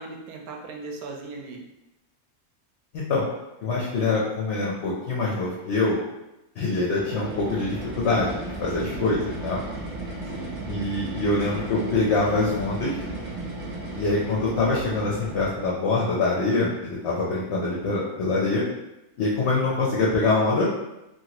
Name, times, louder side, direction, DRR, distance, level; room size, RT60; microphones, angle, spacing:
voice 1, 0.0-1.6 8.7-9.2 10.3-10.7, right 3 dB, 80° right, 1 dB, 1.0 m, -38 dB
voice 2, 3.6-6.0 6.6-9.6 10.7-13.0 14.0-18.6 19.2-20.7, left 3 dB, 60° left, -4 dB, 0.7 m, -24 dB
sound 1, 6.9-15.7, right 2 dB, 50° right, 0.6 m, -35 dB
3.0 x 2.4 x 2.9 m, 0.93 s
omnidirectional pair, 1.6 m